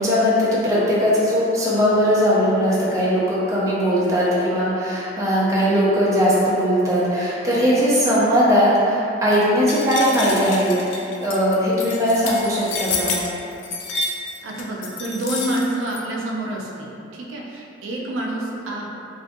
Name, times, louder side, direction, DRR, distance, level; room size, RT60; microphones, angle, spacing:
voice 1, 0.0-13.2, equal, 15° right, -9 dB, 0.5 m, -19 dB
sound 1, 9.7-16.0, left 3 dB, 70° left, 0.3 m, -29 dB
voice 2, 14.4-19.0, right 1 dB, 85° right, -2 dB, 0.3 m, -28 dB
2.3 x 2.2 x 2.5 m, 2.8 s
head